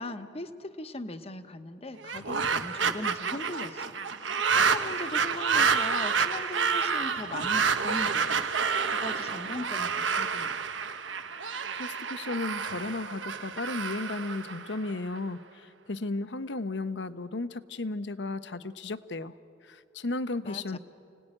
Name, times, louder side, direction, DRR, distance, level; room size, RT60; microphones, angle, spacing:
voice 1, 0.0-4.0 4.2-10.5 20.4-20.8, left 1 dB, 30° left, 8 dB, 1.0 m, -39 dB
sound 1, 2.0-15.2, right 5 dB, 90° right, 1.2 m, -29 dB
voice 2, 11.8-19.3 19.6-20.8, left 2 dB, 75° left, 12 dB, 0.9 m, -34 dB
29.0 x 18.5 x 10.0 m, 2.6 s
head